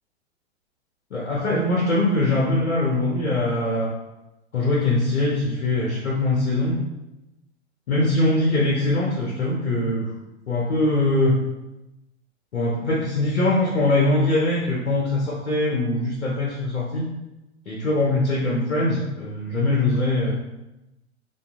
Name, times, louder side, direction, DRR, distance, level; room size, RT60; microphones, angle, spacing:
voice 1, 1.1-3.9 4.5-6.8 7.9-10.1 10.5-11.4 12.5-17.1 17.7-20.3, left 2 dB, 90° left, -3 dB, 0.5 m, -22 dB
2.5 x 2.3 x 2.3 m, 0.96 s
figure-of-eight pair, 95°, 34 cm